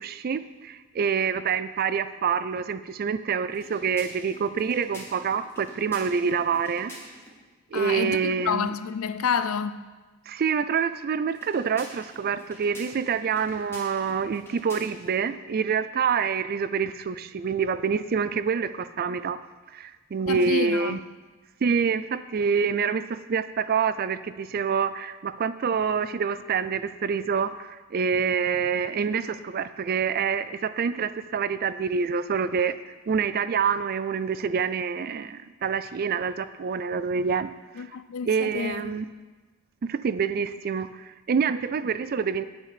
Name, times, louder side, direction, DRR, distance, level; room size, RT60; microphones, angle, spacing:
voice 1, 0.0-6.9 7.7-8.7 10.3-19.4 19.7-21.0 21.6-37.9 38.2-39.1 39.9-42.4, right 6 dB, 45° right, 0.4 m, -27 dB
sound 1, 3.5-7.4 11.3-15.2, left 1 dB, 10° left, 1.9 m, -47 dB
voice 2, 7.7-9.9 20.3-21.0 37.8-38.8, left 6 dB, 80° left, 0.4 m, -29 dB
8.4 x 8.4 x 4.9 m
head